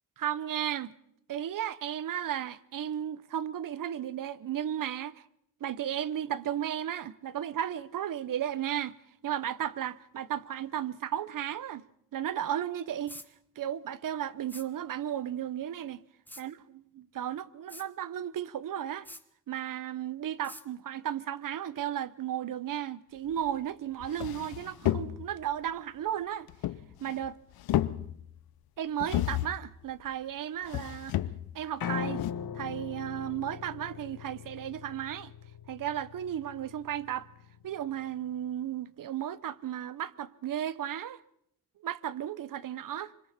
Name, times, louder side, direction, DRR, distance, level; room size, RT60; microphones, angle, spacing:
voice 1, 0.2-0.9 1.3-5.3 5.6-9.0 9.2-11.9 12.1-13.2 13.6-16.0 16.4-19.1 19.5-26.5 27.0-27.4 28.8-31.2 31.5-32.2 32.5-35.3 35.7-37.3 37.6-41.2 41.8-43.1, right 10 dB, 65° right, 0.9 m, -34 dB
sound 1, 13.1-13.3 14.5-14.7 16.3-16.5 17.7-17.9 19.1-19.2 20.4-20.7, left 1 dB, 5° left, 1.2 m, -45 dB
sound 2, 23.5-23.6 24.0-25.4 26.5-27.3 27.5-28.4 29.0-29.7 30.6-31.6 32.2-32.3, left 13 dB, 85° left, 0.7 m, -32 dB
Piano, 31.8-38.0, left 8 dB, 70° left, 1.4 m, -40 dB
26.0 x 24.0 x 4.2 m
cardioid pair, 85°, 36 cm